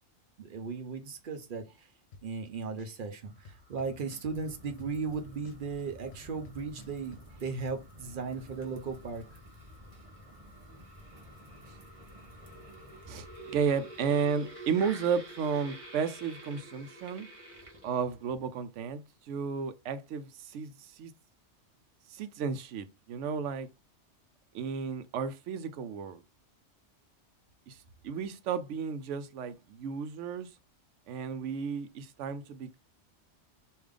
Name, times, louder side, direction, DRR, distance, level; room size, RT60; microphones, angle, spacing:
voice 1, 0.4-1.9 2.2-9.2, right 4 dB, 55° right, 0.7 m, -37 dB
sound 1, 2.1-2.5 2.8-5.1 5.4-7.2, left 3 dB, 65° left, 0.9 m, -53 dB
sound 2, 3.3-18.4, right 1 dB, 10° left, 1.2 m, -53 dB
sound 3, 4.3-18.2, right 1 dB, 30° right, 1.0 m, -52 dB
voice 2, 13.1-17.3 17.8-21.1 22.1-23.7 24.5-26.2 27.7-30.5 31.1-32.8, right 6 dB, 80° right, 0.9 m, -33 dB
3.3 x 2.6 x 3.5 m
omnidirectional pair, 1.2 m